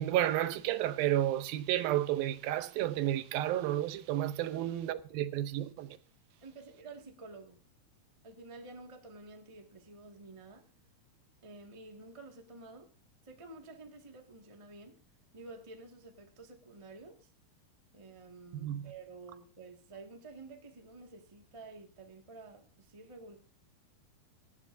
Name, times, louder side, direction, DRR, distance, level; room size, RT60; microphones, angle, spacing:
voice 1, 0.0-6.0 18.5-18.9, right 13 dB, 80° right, 2.5 m, -31 dB
voice 2, 6.4-7.6 8.2-10.6 11.4-12.9 13.2-15.0 15.3-17.3 17.9-23.4, right 3 dB, 35° right, 0.5 m, -51 dB
18.0 x 14.0 x 2.7 m
omnidirectional pair, 4.3 m